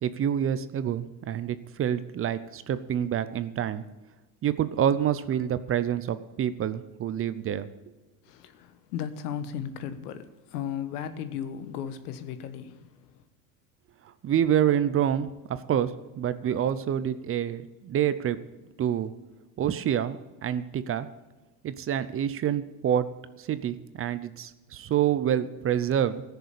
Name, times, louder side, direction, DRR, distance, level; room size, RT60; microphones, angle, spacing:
voice 1, 0.0-3.8 4.4-7.7 14.2-15.9 16.2-18.4 18.8-19.1 19.6-21.1 21.6-23.1 23.4-26.2, right 9 dB, 30° right, 0.6 m, -27 dB
voice 2, 8.2-12.9, left 9 dB, 85° left, 1.3 m, -35 dB
15.0 x 6.9 x 8.3 m
supercardioid pair, 115°, 46 cm